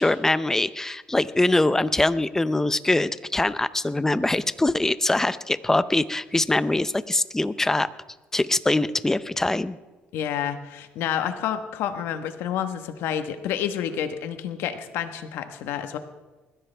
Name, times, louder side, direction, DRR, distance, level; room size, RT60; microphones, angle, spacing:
voice 1, 0.0-7.9 8.3-9.8, left 2 dB, 10° left, 15 dB, 0.6 m, -23 dB
voice 2, 10.1-16.0, left 9 dB, 80° left, 8 dB, 1.3 m, -29 dB
20.5 x 15.0 x 3.4 m, 1.2 s
cardioid pair, 105°, 4 cm